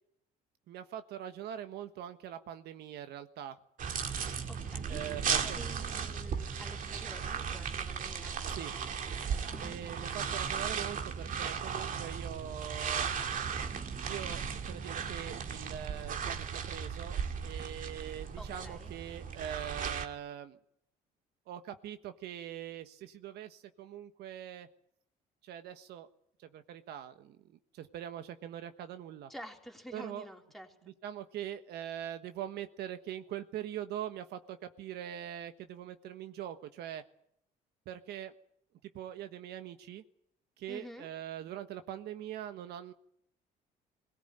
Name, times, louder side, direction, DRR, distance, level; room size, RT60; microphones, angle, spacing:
voice 1, 0.7-3.6 4.9-5.6 8.5-8.7 9.6-13.1 14.1-20.6 21.5-24.7 25.4-26.1 26.4-29.3 29.9-30.3 31.0-37.0 37.8-38.3 38.9-40.0 40.6-42.9, right 10 dB, 75° right, 9 dB, 1.4 m, -42 dB
sound 1, 3.8-20.1, right 6 dB, 50° right, 2.3 m, -36 dB
voice 2, 4.5-5.0 5.4-8.4 9.5-9.8 18.4-18.9 29.3-30.7 40.7-41.1, equal, ahead, 2 dB, 3.7 m, -49 dB
21.0 x 18.0 x 9.2 m, 0.72 s
cardioid pair, 110°, 17 cm